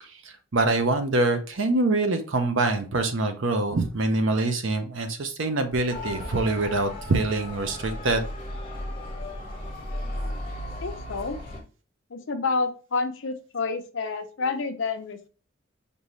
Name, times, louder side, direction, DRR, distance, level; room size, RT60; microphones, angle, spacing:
voice 1, 0.5-8.3, right 2 dB, 65° right, 7 dB, 0.7 m, -24 dB
Motor vehicle (road) / Siren, 5.9-11.6, left 1 dB, 25° left, 1.1 m, -35 dB
voice 2, 10.8-11.4 12.1-15.3, left 4 dB, 65° left, 7 dB, 0.6 m, -29 dB
5.3 x 2.7 x 3.0 m, 0.37 s
head